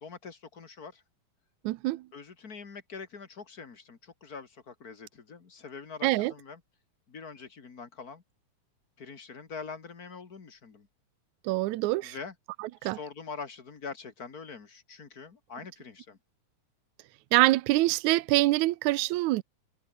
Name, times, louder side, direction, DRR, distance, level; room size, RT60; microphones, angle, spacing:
voice 1, 0.0-1.0 2.1-6.6 7.1-8.2 9.0-10.9 12.0-12.3 12.8-16.2, left 5 dB, 35° left, 2.0 m, -44 dB
voice 2, 1.6-2.0 6.0-6.3 11.4-12.2 12.6-13.0 17.3-19.4, right 18 dB, 80° right, 2.1 m, -25 dB
omnidirectional pair, 3.4 m